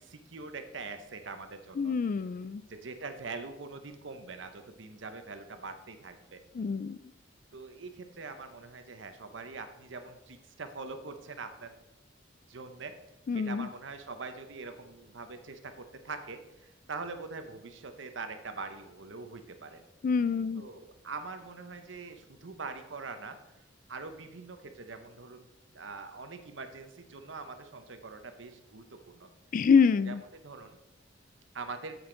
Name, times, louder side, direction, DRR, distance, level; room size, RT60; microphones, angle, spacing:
voice 1, 0.0-1.9 2.6-6.4 7.5-11.7 12.5-12.9 13.3-15.7 16.0-19.8 20.6-23.4 23.9-25.5 25.7-29.3 30.1-30.8 31.5-32.0, right 4 dB, 65° right, 8 dB, 0.9 m, -43 dB
voice 2, 1.8-2.6 6.5-7.0 13.3-13.7 20.0-20.6 29.5-30.2, left 5 dB, 45° left, 16 dB, 0.3 m, -26 dB
7.9 x 7.9 x 3.9 m, 0.93 s
head